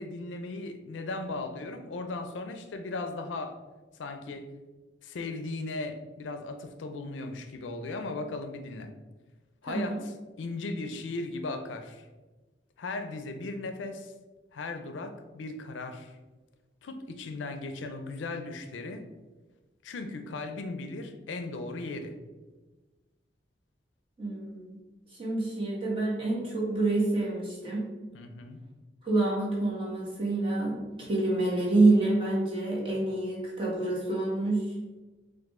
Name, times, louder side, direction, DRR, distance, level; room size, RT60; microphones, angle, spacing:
voice 1, 0.0-3.6 4.0-4.5 5.0-8.9 9.6-12.1 12.8-14.1 14.5-16.1 16.8-19.1 19.8-22.2 28.1-28.6, left 3 dB, 90° left, 7 dB, 0.4 m, -37 dB
voice 2, 9.7-10.0 24.2-24.8 25.1-27.8 29.0-34.7, right 2 dB, 30° right, -5 dB, 1.3 m, -27 dB
4.7 x 2.5 x 3.6 m, 1.2 s
head